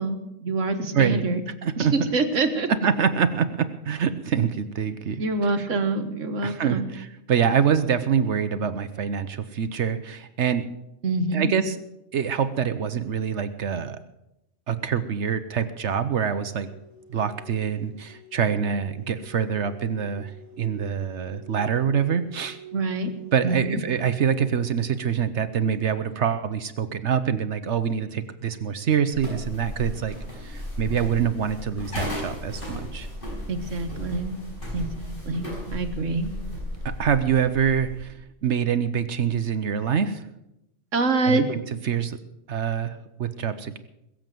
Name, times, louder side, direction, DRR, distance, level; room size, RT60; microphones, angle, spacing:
voice 1, 0.0-1.4 1.8-2.7 5.2-6.9 11.0-11.5 22.7-23.1 23.4-23.8 33.5-34.4 34.7-36.3 40.9-41.5, right 3 dB, 90° right, 7 dB, 1.8 m, -26 dB
voice 2, 1.6-2.1 2.7-5.7 6.4-10.6 11.3-11.8 12.1-14.0 14.7-16.7 17.1-20.3 20.6-22.6 23.3-33.1 37.0-38.2 38.4-40.2 41.3-42.2 42.5-43.8, right 7 dB, 70° right, 11 dB, 1.1 m, -25 dB
sound 1, 16.1-25.2, right 3 dB, 65° left, 4.5 m, -48 dB
sound 2, 29.1-38.0, left 1 dB, 45° left, 5.8 m, -35 dB
21.5 x 7.6 x 7.6 m, 0.85 s
omnidirectional pair, 1.2 m